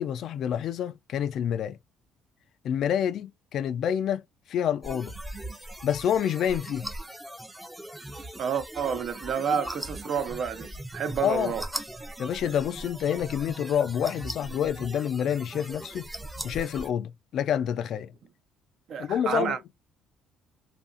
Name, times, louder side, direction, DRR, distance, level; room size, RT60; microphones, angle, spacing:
voice 1, 0.0-1.8 2.6-4.2 4.5-5.1 5.8-6.9 11.2-11.5 12.2-16.1 16.4-18.1 19.0-19.6, left 9 dB, 60° left, 0.3 m, -28 dB
sound 1, 4.8-16.9, right 1 dB, 10° right, 0.5 m, -40 dB
voice 2, 8.4-11.6 18.9-19.6, right 7 dB, 55° right, 0.5 m, -29 dB
2.7 x 2.5 x 2.4 m
cardioid pair, 130°, 0 cm